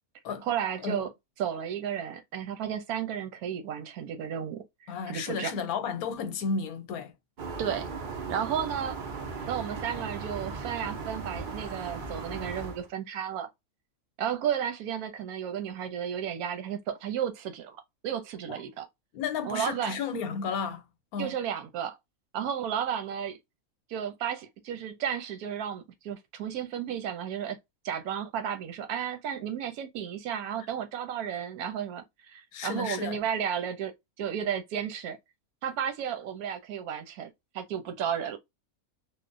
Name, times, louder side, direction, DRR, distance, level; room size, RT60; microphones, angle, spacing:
voice 1, 0.4-1.1 1.4-5.5 7.6-7.9 8.3-9.0 9.4-13.5 14.2-17.8 18.0-18.9 19.4-20.0 21.2-22.0 22.3-23.4 23.9-27.6 27.8-33.9 34.2-35.2 35.6-38.4, right 8 dB, 90° right, 1.1 m, -33 dB
voice 2, 4.9-7.1 18.5-18.6 19.1-20.8 21.1-21.3 32.5-33.2, left 5 dB, 85° left, 1.1 m, -33 dB
sound 1, 7.4-12.9, right 4 dB, 55° right, 0.5 m, -37 dB
3.1 x 2.1 x 2.5 m
omnidirectional pair, 1.5 m